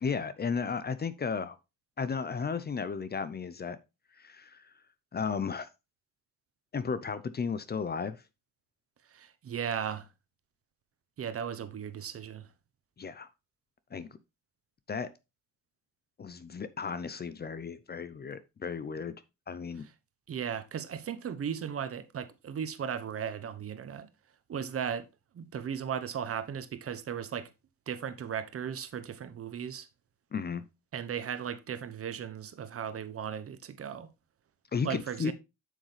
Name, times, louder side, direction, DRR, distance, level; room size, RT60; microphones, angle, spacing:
voice 1, 0.0-1.6 2.0-3.8 4.2-4.7 5.1-5.7 6.7-8.2 13.0-13.3 13.9-14.1 14.9-15.1 16.2-19.1 19.5-19.9 30.3-30.7 34.7-35.3, left 5 dB, 35° left, 0.7 m, -34 dB
voice 2, 9.1-10.1 11.2-12.5 20.3-24.1 24.5-25.1 25.3-27.5 27.9-29.9 30.9-34.1 34.8-35.3, right 8 dB, 50° right, 1.0 m, -36 dB
7.7 x 6.5 x 3.3 m
cardioid pair, 90°, 30 cm